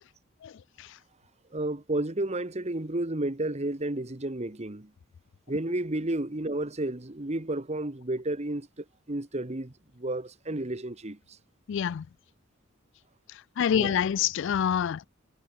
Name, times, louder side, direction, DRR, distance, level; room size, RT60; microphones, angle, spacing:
voice 1, 1.5-4.9 5.5-11.2 13.7-14.0, right 1 dB, 30° right, 1.4 m, -32 dB
voice 2, 11.7-12.1 13.6-15.0, left 8 dB, 60° left, 0.3 m, -26 dB
head